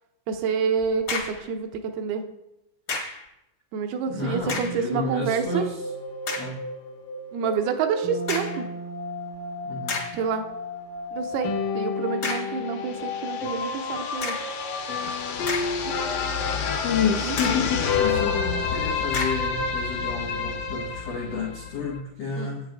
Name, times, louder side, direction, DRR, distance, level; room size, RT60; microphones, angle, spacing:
voice 1, 0.3-2.3 3.7-5.6 7.3-8.7 10.1-10.4 11.1-11.5 11.8-14.4 17.2-17.4 22.4-22.5, right 6 dB, 75° right, 6 dB, 2.4 m, -28 dB
sound 1, 0.8-1.5 2.9-3.3 4.4-4.9 5.5-5.6 6.2-6.6 8.3-8.7 9.3-9.4 9.9-10.3 12.2-12.6 14.2-14.6 15.2-16.0 16.4-16.5 17.4-17.7 19.1-19.5, left 3 dB, 50° left, 1.5 m, -32 dB
voice 2, 4.1-5.9 6.4-6.7 9.6-10.1 15.2-15.3 16.8-22.7, left 4 dB, 90° left, -2 dB, 1.4 m, -30 dB
sound 2, 4.9-22.0, left 5 dB, 65° left, 2.3 m, -30 dB
9.6 x 9.0 x 3.5 m, 0.88 s
omnidirectional pair, 5.2 m